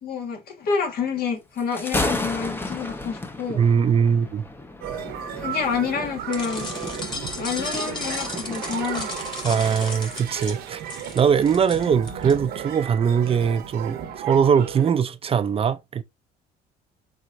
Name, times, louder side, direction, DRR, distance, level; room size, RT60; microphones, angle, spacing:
voice 1, 0.0-3.6 5.4-6.7 7.4-9.2, left 6 dB, 60° left, 1.6 m, -28 dB
Thunder, 1.6-8.8, left 2 dB, 10° left, 0.7 m, -33 dB
voice 2, 3.5-4.4 9.4-10.8 11.1-16.0, right 7 dB, 35° right, 0.5 m, -21 dB
sound 1, 4.8-14.9, right 9 dB, 70° right, 0.9 m, -34 dB
sound 2, 6.3-12.3, left 3 dB, 30° left, 2.0 m, -35 dB
4.5 x 4.1 x 2.6 m
cardioid pair, 110°, 17 cm